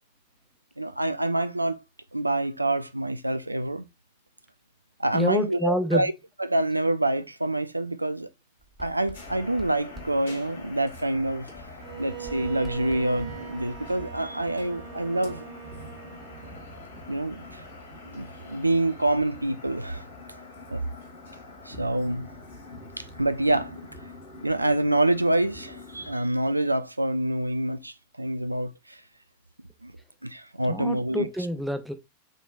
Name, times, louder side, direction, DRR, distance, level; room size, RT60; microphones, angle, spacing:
voice 1, 0.8-1.8 2.1-3.9 5.0-6.1 6.5-8.3 8.8-11.5 12.0-15.4 17.1-17.6 18.0-20.0 20.7-20.8 21.7-22.3 23.0-23.8 24.4-29.0 29.8-29.9 30.2-31.3, right 1 dB, 85° right, 0.4 m, -26 dB
voice 2, 5.1-6.1 30.7-31.9, equal, ahead, 0.8 m, -27 dB
Writing, 8.6-11.2 11.6-14.3, right 2 dB, 20° right, 1.4 m, -49 dB
sound 1, 9.1-26.1, left 2 dB, 70° left, 2.5 m, -44 dB
Bowed string instrument, 11.8-16.8, right 13 dB, 40° right, 1.1 m, -41 dB
6.3 x 3.2 x 2.3 m
figure-of-eight pair, 90°, 0 cm